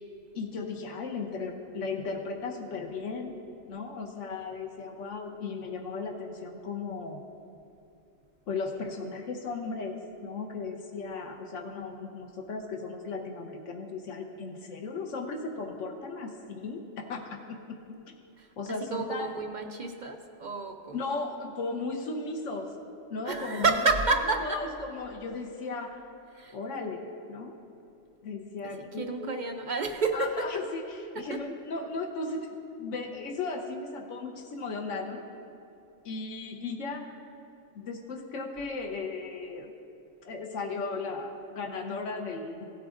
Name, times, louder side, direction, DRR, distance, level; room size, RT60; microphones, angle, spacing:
voice 1, 0.3-3.3 3.7-7.2 8.5-10.0 10.2-17.8 18.6-19.3 20.9-22.7 23.1-23.8 24.4-26.0 26.5-27.6 28.2-29.3 30.1-32.5 32.8-35.2 36.0-37.1 37.7-39.7 40.2-42.6, left 3 dB, 80° left, 1 dB, 1.1 m, -36 dB
voice 2, 18.4-21.1 23.2-24.6 26.3-26.6 28.6-30.7 31.1-31.4, right 3 dB, 55° right, 4 dB, 0.5 m, -30 dB
16.0 x 9.3 x 2.5 m, 2.7 s
omnidirectional pair, 1.3 m